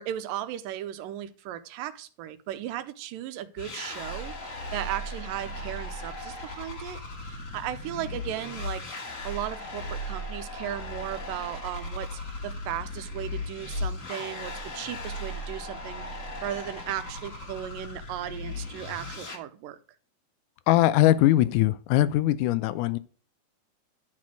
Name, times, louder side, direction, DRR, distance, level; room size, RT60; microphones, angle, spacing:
voice 1, 0.0-8.8 9.2-19.8, right 12 dB, 80° right, 2.3 m, -36 dB
sound 1, 3.6-19.4, left 1 dB, 50° left, 0.9 m, -37 dB
voice 2, 20.7-23.0, left 14 dB, 80° left, 1.9 m, -21 dB
12.0 x 4.3 x 6.2 m
omnidirectional pair, 4.0 m